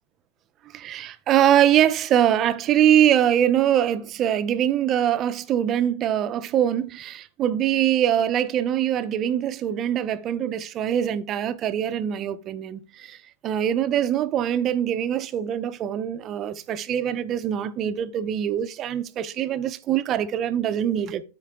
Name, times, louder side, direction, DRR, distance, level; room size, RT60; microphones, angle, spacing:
voice 1, 0.7-21.2, right 10 dB, 30° right, 0.7 m, -23 dB
12.5 x 4.6 x 3.7 m
hypercardioid pair, 135°, 0 cm